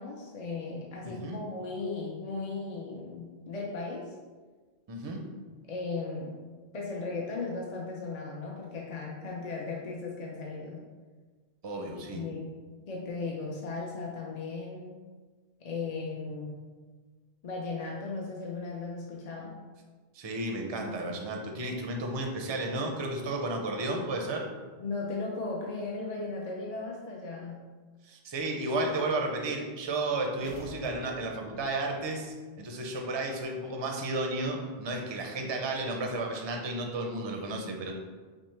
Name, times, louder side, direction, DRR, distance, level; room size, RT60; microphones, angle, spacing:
voice 1, 0.0-4.1 5.7-6.4 6.7-10.8 12.1-12.5 12.9-14.9 15.6-16.7 17.4-19.6 24.8-27.6, left 3 dB, 50° left, -2 dB, 0.5 m, -36 dB
voice 2, 1.0-1.4 4.9-5.3 11.6-12.2 20.1-24.5 28.0-37.9, right 2 dB, 40° right, 2 dB, 0.4 m, -33 dB
sound 1, 30.4-31.9, right 1 dB, 75° left, 0.9 m, -47 dB
5.8 x 2.1 x 3.2 m, 1.4 s
omnidirectional pair, 1.1 m